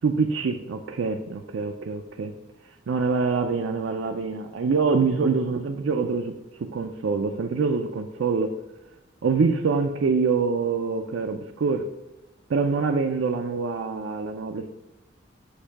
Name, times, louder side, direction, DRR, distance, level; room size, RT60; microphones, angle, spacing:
voice 1, 0.0-2.3 2.9-6.3 6.7-8.5 9.2-11.9 12.5-14.7, right 4 dB, 70° right, 4 dB, 0.4 m, -25 dB
6.6 x 2.7 x 5.7 m, 0.97 s
head